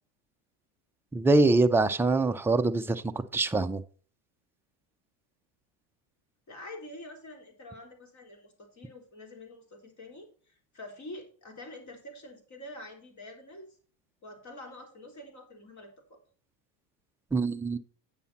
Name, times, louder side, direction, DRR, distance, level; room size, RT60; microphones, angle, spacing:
voice 1, 1.1-3.0 3.3-3.8 17.3-17.8, right 3 dB, 5° right, 0.3 m, -24 dB
voice 2, 6.5-13.8 14.2-16.2, left 1 dB, 35° left, 3.7 m, -46 dB
9.5 x 7.0 x 4.0 m
supercardioid pair, 100°, 49 cm